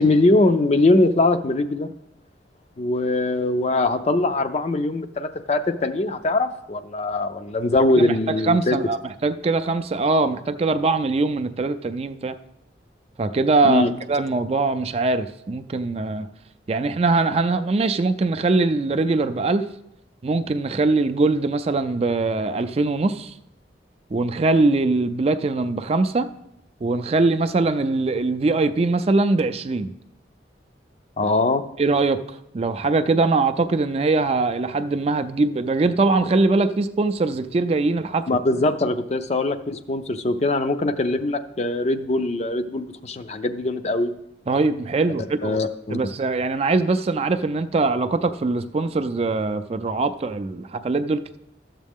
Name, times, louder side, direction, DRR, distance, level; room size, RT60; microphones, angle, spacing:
voice 1, 0.0-1.9 2.8-8.8 13.6-13.9 31.2-31.6 38.3-44.2 45.4-46.0, left 2 dB, 40° left, 9 dB, 0.5 m, -22 dB
voice 2, 8.4-12.3 13.2-16.3 16.7-19.6 20.2-23.3 24.1-26.3 26.8-29.9 31.8-38.2 44.5-45.6 45.9-51.4, right 3 dB, 35° right, 10 dB, 0.4 m, -22 dB
12.0 x 7.4 x 3.6 m, 0.82 s
head